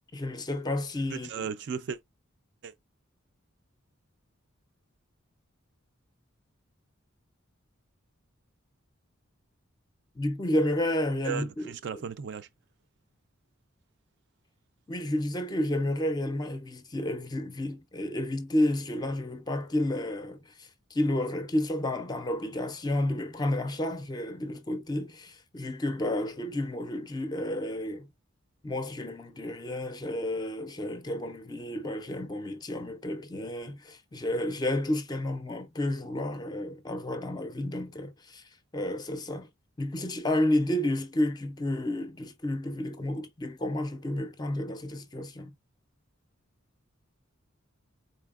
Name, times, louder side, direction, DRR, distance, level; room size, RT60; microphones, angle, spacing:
voice 1, 0.1-1.5 10.2-12.0 14.9-28.1 28.6-38.4 38.7-39.5 39.8-45.5, left 1 dB, 20° left, 0.4 m, -31 dB
voice 2, 1.1-2.0 2.6-2.7 11.2-12.5, right 7 dB, 55° right, 0.3 m, -35 dB
4.1 x 2.8 x 2.4 m
head